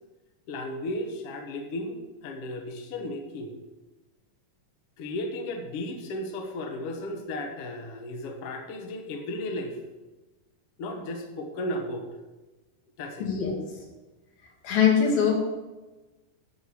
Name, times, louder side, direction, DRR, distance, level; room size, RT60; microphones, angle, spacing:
voice 1, 0.5-3.5 5.0-9.8 10.8-12.1 13.0-13.3, left 1 dB, 60° left, 3 dB, 1.7 m, -34 dB
voice 2, 13.2-13.6 14.6-15.4, left 7 dB, 85° left, -1 dB, 4.0 m, -22 dB
12.5 x 4.8 x 7.2 m, 1.1 s
omnidirectional pair, 4.1 m